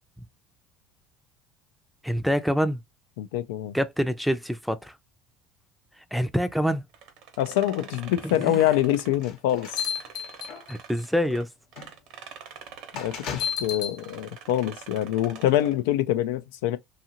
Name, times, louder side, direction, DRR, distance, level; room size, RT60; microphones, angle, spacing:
voice 1, 2.0-2.8 3.7-4.9 6.1-6.8 8.4-8.6 10.7-11.5, equal, ahead, 0.5 m, -26 dB
voice 2, 3.2-3.7 7.4-9.7 12.9-16.8, left 12 dB, 85° left, 0.4 m, -25 dB
sound 1, 6.9-11.4 11.7-15.8, right 8 dB, 65° right, 0.8 m, -46 dB
sound 2, 9.2-11.0 11.8-11.9 12.9-14.0, left 8 dB, 65° left, 0.9 m, -32 dB
2.8 x 2.4 x 2.8 m
supercardioid pair, 95°, 0 cm